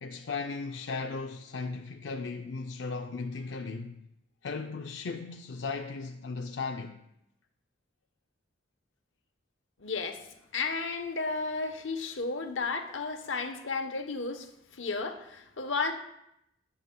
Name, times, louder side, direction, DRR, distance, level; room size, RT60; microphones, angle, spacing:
voice 1, 0.0-4.1 4.4-7.0, left 4 dB, 70° left, 0.5 m, -36 dB
voice 2, 9.8-10.2 10.5-14.5 14.7-15.9, left 4 dB, 90° left, 1.0 m, -33 dB
20.5 x 6.8 x 2.2 m
head